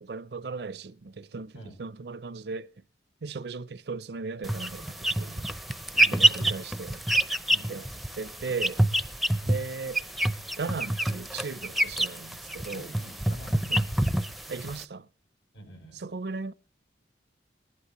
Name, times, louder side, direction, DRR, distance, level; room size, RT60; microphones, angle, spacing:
voice 1, 0.0-1.5 1.8-2.7 3.2-5.6 6.1-7.0 7.7-7.9 8.2-8.8 9.4-10.0 10.6-12.9 13.7-13.8 14.5-15.1 15.9-16.5, right 4 dB, 65° right, 0.5 m, -37 dB
sound 1, 4.4-14.8, right 1 dB, ahead, 0.5 m, -27 dB
voice 2, 5.9-6.5 7.5-7.8 12.7-13.9 15.5-16.0, right 1 dB, 90° left, 7.8 m, -47 dB
20.0 x 11.5 x 3.0 m
head